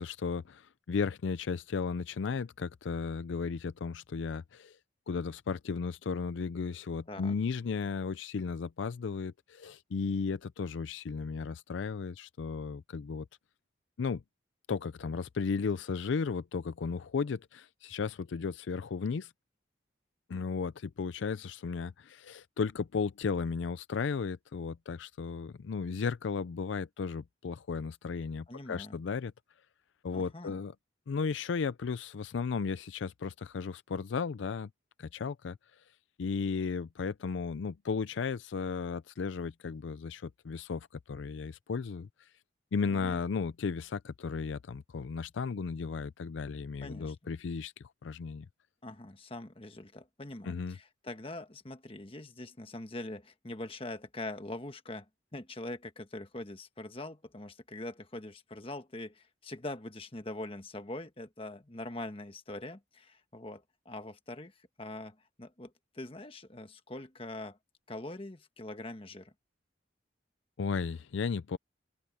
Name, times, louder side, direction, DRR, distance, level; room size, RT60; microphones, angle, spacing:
voice 1, 0.0-4.8 5.1-13.3 14.0-14.2 14.7-19.3 20.3-29.3 30.0-30.7 31.1-34.7 35.0-35.6 36.2-42.3 42.7-48.5 50.4-50.8 70.6-71.6, left 5 dB, 75° left, 0.4 m, -35 dB
voice 2, 28.5-29.0 30.1-30.6 42.9-43.2 46.8-47.2 48.8-67.6 67.9-69.3, left 2 dB, 30° left, 1.3 m, -43 dB
open air
head